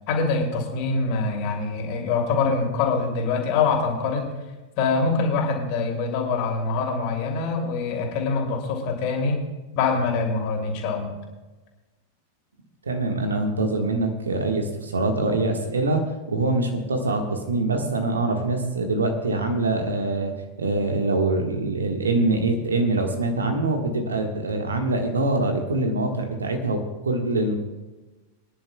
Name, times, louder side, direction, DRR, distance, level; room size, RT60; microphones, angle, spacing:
voice 1, 0.1-4.3 4.8-9.4 9.7-11.1, left 4 dB, 45° left, 1 dB, 2.9 m, -24 dB
voice 2, 12.8-16.0 16.3-20.3 20.6-27.5, right 2 dB, 75° right, 4 dB, 1.6 m, -24 dB
23.5 x 10.5 x 2.3 m, 1.2 s
figure-of-eight pair, 90°, 0 cm